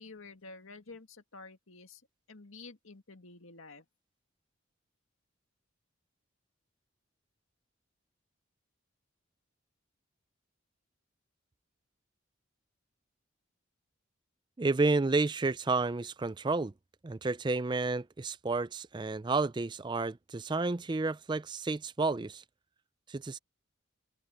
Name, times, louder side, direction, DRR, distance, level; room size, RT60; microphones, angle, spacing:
voice 1, 0.0-2.0 2.3-3.8, left 3 dB, 85° left, 2.1 m, -50 dB
voice 2, 14.6-16.7 17.0-22.4 23.1-23.4, right 3 dB, 20° right, 0.4 m, -31 dB
open air
head